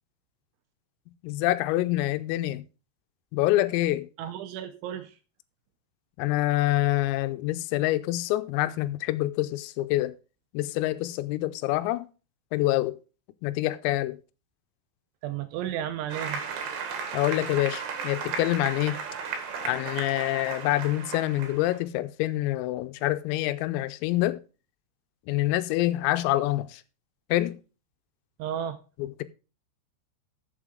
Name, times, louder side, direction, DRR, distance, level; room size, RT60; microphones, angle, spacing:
voice 1, 1.2-2.6 3.3-4.1 6.2-10.1 10.5-12.1 12.5-13.0 13.4-14.2 17.1-19.0 19.6-24.4 25.3-26.8 27.3-27.6 29.0-29.2, left 16 dB, 85° left, 3.4 m, -26 dB
voice 2, 4.2-5.2 15.2-16.4 28.4-28.8, right 10 dB, 80° right, 2.9 m, -33 dB
Applause, 16.1-21.8, right 6 dB, 60° right, 3.4 m, -35 dB
13.0 x 7.7 x 3.8 m
omnidirectional pair, 5.9 m